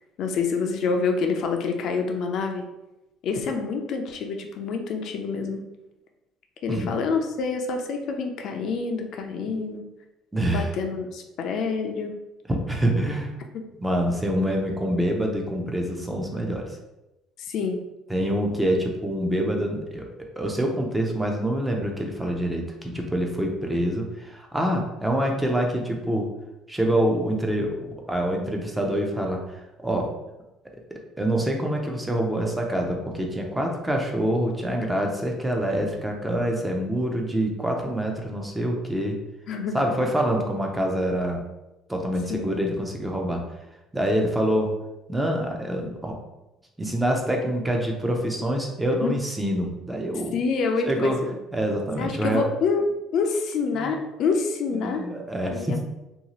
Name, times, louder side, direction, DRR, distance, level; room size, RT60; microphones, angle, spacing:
voice 1, 0.2-2.6 3.2-5.6 6.6-9.8 10.5-12.1 17.4-17.8 39.5-39.8 42.3-42.5 49.0-49.1 50.3-51.4 52.0-52.8 53.1-55.1 55.5-55.8, left 4 dB, 55° left, 4 dB, 0.3 m, -27 dB
voice 2, 10.3-10.7 12.7-13.3 13.8-16.8 18.1-20.1 20.4-26.3 26.7-30.1 31.2-39.2 39.7-41.4 41.9-43.4 43.9-44.7 45.1-46.2 46.8-50.4 50.8-51.2 51.5-52.4 53.7-53.9 54.7-55.8, right 1 dB, 10° right, 1 dB, 0.4 m, -26 dB
2.6 x 2.3 x 2.9 m, 0.96 s
cardioid pair, 140°, 0 cm